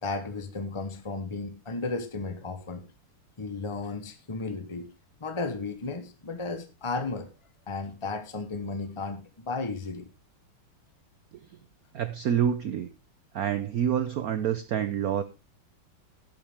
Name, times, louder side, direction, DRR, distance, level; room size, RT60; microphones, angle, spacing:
voice 1, 0.0-2.8 3.4-4.9 5.2-7.3 7.7-10.1, left 3 dB, 35° left, 0.4 m, -34 dB
voice 2, 11.9-12.9 13.3-15.2, right 9 dB, 80° right, 0.8 m, -27 dB
12.0 x 10.0 x 3.5 m
omnidirectional pair, 2.4 m